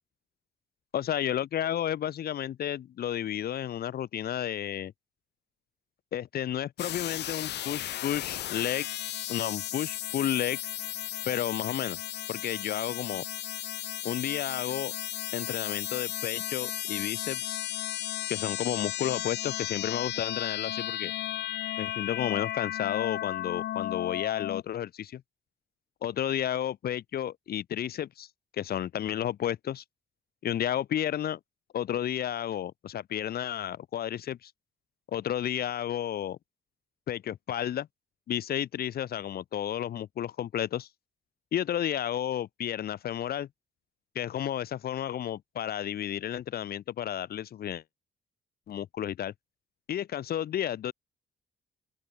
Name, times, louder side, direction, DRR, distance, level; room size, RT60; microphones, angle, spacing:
voice 1, 0.9-4.9 6.1-8.9 9.3-10.6 11.3-12.0 12.3-13.2 14.0-14.9 15.3-17.6 18.3-21.1 21.8-25.2 26.0-28.3 28.6-29.8 30.4-31.4 31.7-34.5 35.1-36.4 37.1-37.9 38.3-40.9 41.5-43.5 44.2-47.8 48.7-49.3 49.9-50.9, left 10 dB, 65° left, 2.1 m, -32 dB
sound 1, 6.8-24.6, left 13 dB, 85° left, 2.2 m, -35 dB
open air
cardioid pair, 130°, 17 cm